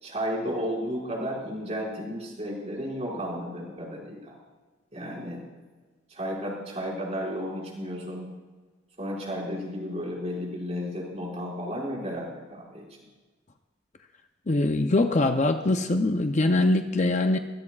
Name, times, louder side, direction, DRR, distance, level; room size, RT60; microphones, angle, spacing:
voice 1, 0.0-4.3 4.9-5.4 6.1-8.3 9.0-12.9, equal, 35° right, -3 dB, 5.3 m, -33 dB
voice 2, 14.5-17.4, left 2 dB, 35° left, 6 dB, 0.7 m, -23 dB
23.0 x 20.5 x 2.4 m, 1.3 s
head